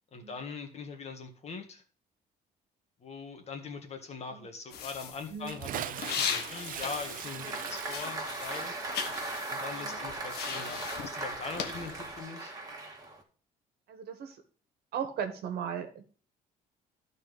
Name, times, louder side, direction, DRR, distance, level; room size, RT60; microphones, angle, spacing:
voice 1, 0.1-1.8 3.0-8.7 9.5-12.5, left 4 dB, 40° left, 5 dB, 1.8 m, -42 dB
sound 1, 4.7-7.6 7.8-12.2, left 7 dB, 70° left, 1.3 m, -38 dB
Bathtub (filling or washing) / Splash splatter, 5.4-12.0, right 11 dB, 55° right, 0.5 m, -43 dB
Applause, 6.9-13.2, right 2 dB, 20° right, 2.0 m, -39 dB
voice 2, 13.9-14.4 14.9-16.1, right 8 dB, 70° right, 7 dB, 1.5 m, -38 dB
12.0 x 4.3 x 5.2 m, 0.41 s
cardioid pair, 110°, 17 cm